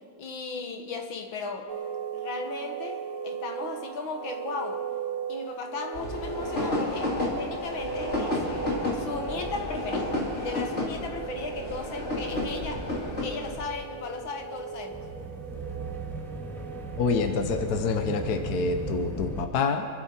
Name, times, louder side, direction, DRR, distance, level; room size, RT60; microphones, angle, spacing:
voice 1, 0.2-1.7 2.1-4.8 5.3-8.4 8.9-12.8 13.2-15.1, left 4 dB, 70° left, 4 dB, 2.2 m, -36 dB
sound 1, 1.7-19.1, right 8 dB, 80° right, 2.5 m, -39 dB
sound 2, 5.9-13.6, left 1 dB, 35° left, 3.0 m, -31 dB
sound 3, 8.3-19.5, right 2 dB, ahead, 1.6 m, -40 dB
voice 2, 17.0-19.9, left 4 dB, 55° left, 6 dB, 1.4 m, -27 dB
27.0 x 12.0 x 4.4 m, 2.2 s
omnidirectional pair, 2.2 m